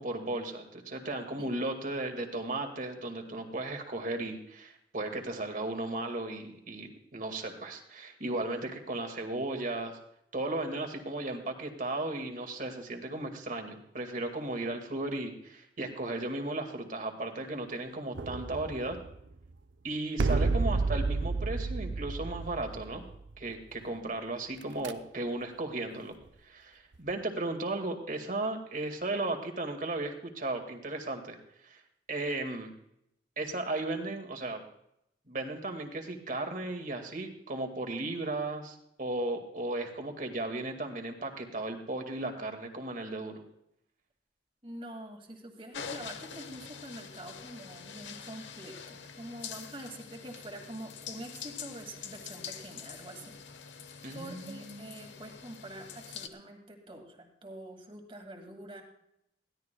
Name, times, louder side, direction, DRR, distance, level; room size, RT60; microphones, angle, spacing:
voice 1, 0.0-10.0 10.3-19.0 19.8-23.0 23.4-26.2 26.4-31.4 31.6-31.8 32.1-32.7 33.4-34.6 35.3-43.4 54.0-54.9, right 2 dB, 45° right, 5 dB, 1.9 m, -35 dB
sound 1, 18.1-19.5 20.2-23.5 24.6-24.9, right 3 dB, 80° right, 0.7 m, -31 dB
voice 2, 44.6-53.3 53.6-53.9 54.1-58.8, right 1 dB, 30° right, 3 dB, 2.1 m, -46 dB
sound 2, 45.7-56.3, left 6 dB, 85° left, 1.0 m, -45 dB
21.5 x 16.0 x 2.2 m, 0.78 s
head